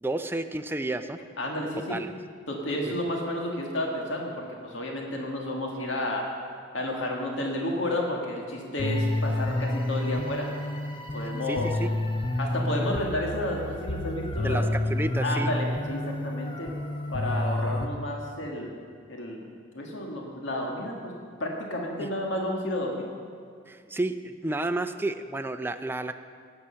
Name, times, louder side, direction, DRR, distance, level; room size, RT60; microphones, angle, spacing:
voice 1, 0.0-1.2 1.9-2.1 2.8-2.9 11.5-11.9 14.4-15.5 22.0-22.1 23.7-26.1, right 2 dB, 10° right, 8 dB, 0.4 m, -31 dB
voice 2, 1.4-2.0 2.5-6.3 6.7-10.5 11.1-11.7 12.4-14.6 15.2-16.7 17.1-18.7 19.1-19.5 19.8-21.1 21.4-23.1, left 1 dB, 75° left, 0 dB, 1.8 m, -31 dB
sound 1, 8.8-17.9, left 1 dB, 25° left, 0.8 m, -29 dB
15.0 x 9.8 x 5.7 m, 2.1 s
head